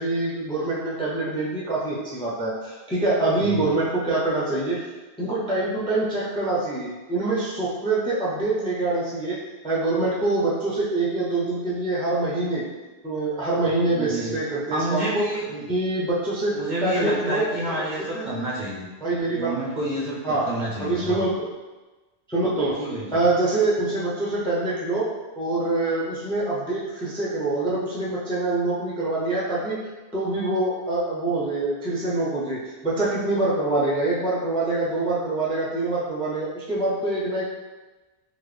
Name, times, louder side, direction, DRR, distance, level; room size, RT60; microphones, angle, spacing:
voice 1, 0.0-4.8 5.2-9.4 9.6-12.6 13.0-15.3 15.7-17.4 18.1-18.3 19.0-19.5 20.2-20.5 20.8-21.4 22.3-25.1 25.4-29.8 30.1-37.5, right 2 dB, 5° left, -6 dB, 0.4 m, -25 dB
voice 2, 3.4-3.8 13.8-14.4 14.7-15.7 16.5-18.9 19.3-21.3 22.7-23.2, right 1 dB, 55° right, -4 dB, 0.6 m, -29 dB
3.7 x 2.1 x 3.2 m, 1.2 s
omnidirectional pair, 1.1 m